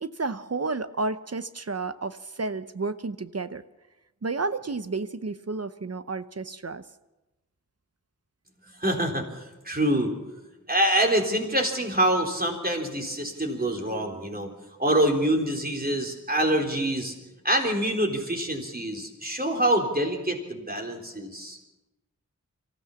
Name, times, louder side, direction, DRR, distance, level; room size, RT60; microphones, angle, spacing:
voice 1, 0.0-3.6 4.2-6.8, right 3 dB, 55° right, 12 dB, 0.8 m, -31 dB
voice 2, 8.8-10.1 10.7-14.5 14.8-17.1 17.4-21.6, right 1 dB, 30° right, 1 dB, 3.8 m, -25 dB
25.0 x 15.5 x 7.1 m, 1.0 s
wide cardioid pair, 60°, 30 cm